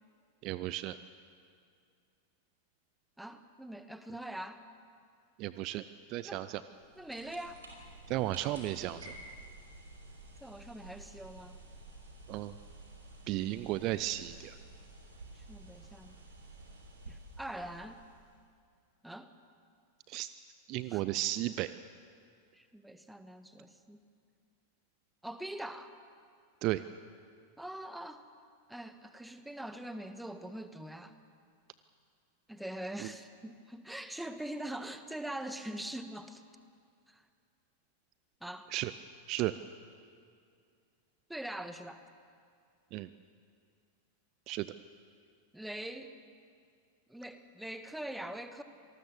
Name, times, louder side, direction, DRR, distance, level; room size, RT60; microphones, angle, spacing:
voice 1, 0.4-1.0 5.4-6.6 8.1-9.1 12.3-12.5 13.3-14.6 20.1-20.3 20.7-21.8 26.6-26.8 33.0-33.1 38.7-38.9 39.3-39.5 42.9-43.1 44.5-44.7, right 16 dB, 40° right, 14 dB, 0.5 m, -34 dB
voice 2, 3.2-4.6 6.2-6.5 7.0-7.6 10.4-11.6 15.3-16.2 17.1-18.0 19.0-19.3 20.9-21.0 22.5-24.0 25.2-26.0 27.6-28.2 28.7-31.2 32.5-36.4 37.1-37.3 38.4-38.7 41.3-42.0 45.5-46.2 47.1-48.6, right 1 dB, 5° right, 10 dB, 1.3 m, -43 dB
sound 1, 6.6-18.4, right 2 dB, 70° right, 5.0 m, -52 dB
26.5 x 19.0 x 7.1 m, 2.3 s
figure-of-eight pair, 90°, 0 cm